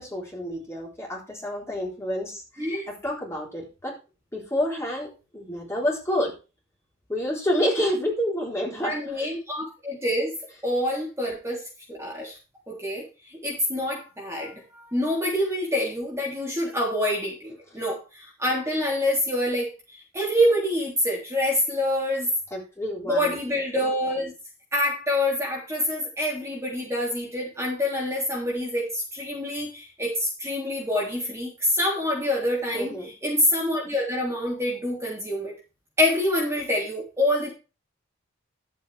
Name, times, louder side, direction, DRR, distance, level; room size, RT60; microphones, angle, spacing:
voice 1, 0.0-3.9 4.3-5.1 5.3-6.3 7.1-9.3 22.5-23.4 32.7-33.1, equal, 15° left, -3 dB, 4.0 m, -29 dB
voice 2, 8.8-10.4 10.6-12.3 12.7-19.7 20.1-22.3 23.1-24.3 24.7-35.5 36.0-37.5, left 1 dB, 15° right, -4 dB, 3.4 m, -26 dB
12.0 x 8.2 x 3.4 m, 0.30 s
head